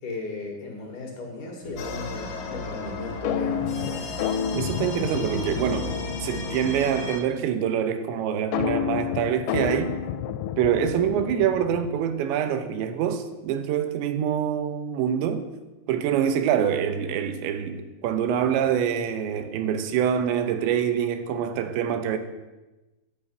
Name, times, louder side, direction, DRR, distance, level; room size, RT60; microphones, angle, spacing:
voice 1, 0.0-4.2, left 3 dB, 55° left, 2.9 m, -36 dB
sound 1, 1.6-7.1, right 3 dB, 30° right, 1.3 m, -40 dB
sound 2, 1.8-7.2, left 4 dB, 70° left, 3.3 m, -35 dB
sound 3, 3.2-7.0 8.5-12.1, left 8 dB, 85° left, 2.9 m, -30 dB
voice 2, 4.5-6.0 6.2-10.0 10.6-15.5 15.9-22.2, right 9 dB, 85° right, 3.2 m, -25 dB
10.5 x 6.9 x 8.7 m
omnidirectional pair, 5.1 m